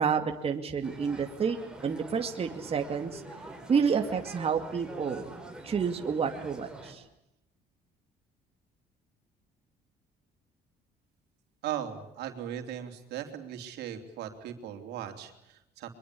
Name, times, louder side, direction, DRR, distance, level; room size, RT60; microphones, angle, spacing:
voice 1, 0.0-1.6 1.8-3.2 3.7-5.3 5.6-7.0, right 6 dB, 35° right, 4 dB, 2.4 m, -29 dB
sound 1, 0.8-6.9, right 2 dB, 5° right, 5.5 m, -45 dB
voice 2, 11.6-15.9, right 10 dB, 80° right, 5 dB, 3.7 m, -38 dB
23.5 x 23.0 x 8.6 m, 0.84 s
cardioid pair, 110°, 17 cm